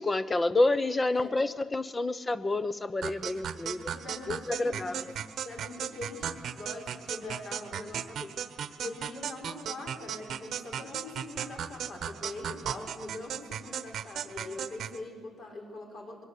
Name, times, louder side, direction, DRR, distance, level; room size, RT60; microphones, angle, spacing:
voice 1, 0.0-3.9 4.3-5.0 7.2-7.3, left 2 dB, 20° left, 1.0 m, -28 dB
sound 1, 3.0-15.0, right 9 dB, 60° right, 1.1 m, -37 dB
voice 2, 3.8-5.1 5.4-16.2, left 2 dB, 55° left, 6.1 m, -43 dB
23.0 x 22.5 x 8.4 m
cardioid pair, 120°, 0 cm